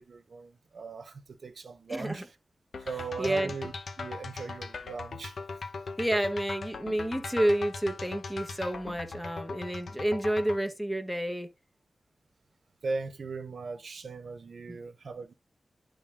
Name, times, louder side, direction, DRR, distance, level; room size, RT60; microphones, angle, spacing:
voice 1, 0.0-2.3 2.8-5.4 12.8-15.3, right 4 dB, 75° right, 0.9 m, -38 dB
voice 2, 1.9-2.2 3.2-3.5 6.0-11.5 14.7-14.8, right 1 dB, ahead, 1.2 m, -30 dB
sound 1, 2.7-10.6, left 4 dB, 80° left, 0.9 m, -40 dB
11.5 x 3.9 x 3.6 m
wide cardioid pair, 110°, 0 cm